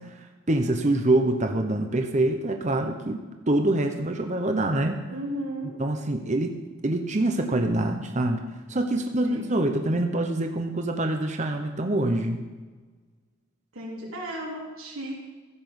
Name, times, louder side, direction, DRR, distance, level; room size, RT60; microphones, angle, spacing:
voice 1, 0.5-5.0 5.8-6.6 6.8-8.4 8.7-12.4, right 1 dB, 35° right, 5 dB, 0.8 m, -25 dB
voice 2, 5.1-5.8 9.2-9.9 13.7-15.1, right 1 dB, 75° right, -3 dB, 3.5 m, -35 dB
15.0 x 6.0 x 7.0 m, 1.3 s
head